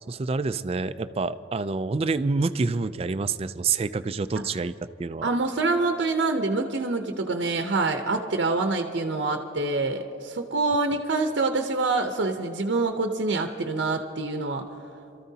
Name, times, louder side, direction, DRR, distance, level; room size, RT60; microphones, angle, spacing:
voice 1, 0.1-4.7 5.0-5.3, right 4 dB, 30° right, 13 dB, 0.3 m, -27 dB
voice 2, 5.2-14.6, right 3 dB, 70° right, 5 dB, 0.7 m, -26 dB
28.0 x 14.0 x 2.8 m, 2.8 s
head